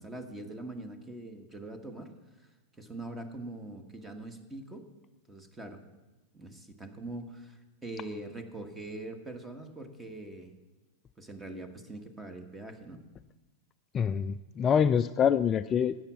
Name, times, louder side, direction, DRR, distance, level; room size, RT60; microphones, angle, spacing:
voice 1, 0.0-2.1 2.4-2.5 2.8-4.9 5.3-5.8 6.3-10.5 11.2-13.0, right 2 dB, 15° right, 7 dB, 1.6 m, -43 dB
voice 2, 13.9-16.0, left 7 dB, 30° left, 11 dB, 0.3 m, -25 dB
13.5 x 9.3 x 6.0 m, 1.1 s
hypercardioid pair, 105°, 0 cm